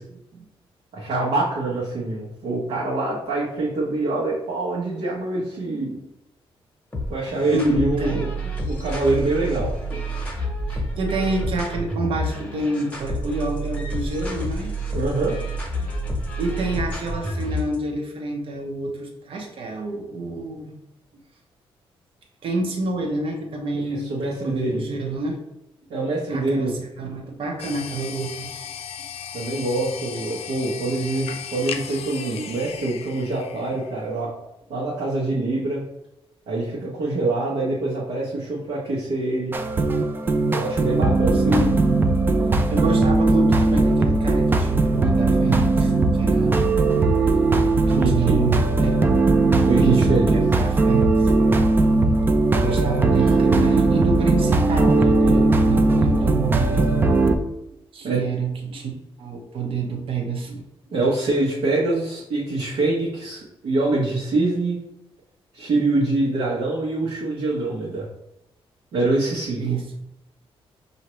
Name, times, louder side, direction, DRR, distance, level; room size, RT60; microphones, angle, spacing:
voice 1, 0.9-6.0 7.1-8.3 8.6-9.8 14.9-15.3 23.7-24.8 25.9-26.7 29.3-34.3 34.7-35.8 36.5-39.6 40.5-41.5 47.9-48.4 49.6-50.3 58.0-58.2 60.9-64.8 65.5-68.0 68.9-69.6, right 2 dB, 80° right, -6 dB, 1.2 m, -25 dB
Electric guitar trap, 6.9-17.8, right 1 dB, 15° left, 1.0 m, -29 dB
voice 2, 7.5-8.3 10.7-14.7 16.4-20.7 22.4-25.4 26.3-28.5 41.3-41.8 42.4-46.9 47.2-47.5 47.7-49.0 49.7-51.3 52.5-57.0 57.9-58.9 59.2-60.6 69.6-69.8, right 3 dB, 60° right, 2 dB, 0.9 m, -28 dB
sound 1, 27.6-34.2, left 8 dB, 80° left, 0.5 m, -36 dB
sound 2, 39.5-57.3, right 3 dB, 20° right, 0.4 m, -19 dB
5.7 x 2.7 x 3.1 m, 0.86 s
wide cardioid pair, 135°, 10 cm